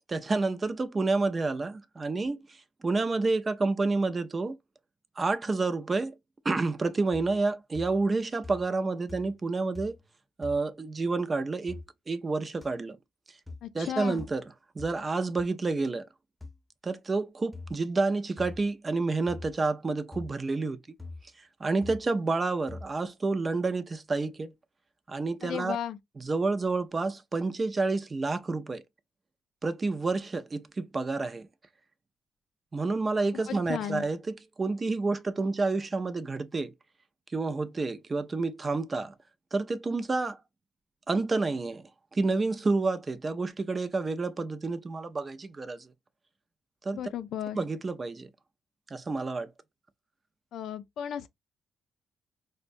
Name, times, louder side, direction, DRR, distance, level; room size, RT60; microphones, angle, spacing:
voice 1, 0.1-2.5 2.8-4.6 5.2-6.1 6.4-10.0 10.4-13.0 13.7-14.4 14.8-16.1 16.8-20.8 21.6-24.5 25.1-25.8 26.2-28.8 29.6-31.5 32.7-36.7 37.3-39.1 39.5-40.4 41.1-41.8 42.1-45.9 46.8-47.0 47.5-48.3 48.9-49.5, right 3 dB, 30° right, 0.5 m, -29 dB
sound 1, 7.1-7.5 7.7-8.2 8.4-8.8 9.1-9.5 9.7-10.1 10.4-10.6 11.7-11.9 12.6-12.7 13.5-13.7 14.2-14.4 14.8-15.0 15.4-15.5 16.4-16.6 17.5-17.8 18.4-18.7 19.3-19.6 20.1-20.3 21.0-21.3 21.8-22.1 22.7-22.9, left 3 dB, ahead, 0.8 m, -43 dB
voice 2, 13.6-14.2 25.4-26.0 33.5-34.0 46.9-47.6 50.5-51.3, left 10 dB, 75° left, 0.4 m, -35 dB
4.3 x 2.1 x 2.5 m
cardioid pair, 90°, 0 cm